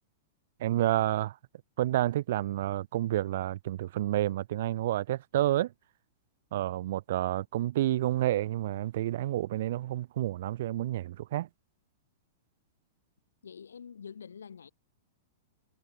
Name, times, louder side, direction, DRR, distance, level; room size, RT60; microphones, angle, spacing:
voice 1, 0.6-1.4 1.8-5.7 6.5-11.5, right 14 dB, 55° right, 0.4 m, -29 dB
voice 2, 13.4-14.7, left 7 dB, 75° left, 1.7 m, -46 dB
figure-of-eight pair, 100°, 0 cm